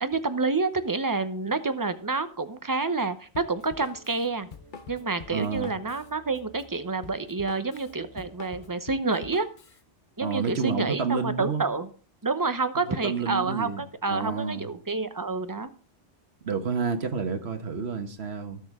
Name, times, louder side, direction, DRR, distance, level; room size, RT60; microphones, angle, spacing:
voice 1, 0.0-4.5 4.9-9.5 10.2-11.9 12.2-15.7, right 3 dB, 20° right, 0.7 m, -28 dB
Drum kit, 3.4-9.8, left 6 dB, 50° left, 1.0 m, -46 dB
sound 1, 3.5-8.7, equal, 75° left, 6.4 m, -55 dB
voice 2, 5.3-5.7 10.2-11.6 12.9-13.8 14.1-14.7 16.4-18.6, right 5 dB, 65° right, 1.5 m, -29 dB
19.0 x 6.5 x 3.7 m
omnidirectional pair, 1.1 m